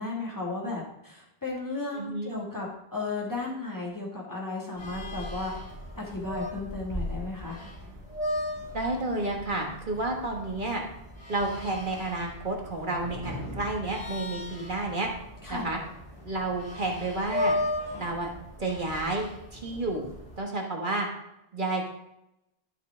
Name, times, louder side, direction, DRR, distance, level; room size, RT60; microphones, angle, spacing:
voice 1, 0.0-5.5 6.0-7.6 15.4-15.7, left 3 dB, 20° left, -4 dB, 2.4 m, -34 dB
voice 2, 1.9-2.3 8.7-10.8 11.3-15.1 15.5-15.8 16.2-17.5 18.0-18.3 18.6-19.3 19.5-20.1 20.4-21.1 21.5-21.9, right 2 dB, 55° right, 0 dB, 1.6 m, -30 dB
sound 1, 4.8-20.4, left 1 dB, 35° left, 3.6 m, -37 dB
12.5 x 5.5 x 3.8 m, 0.83 s
omnidirectional pair, 1.0 m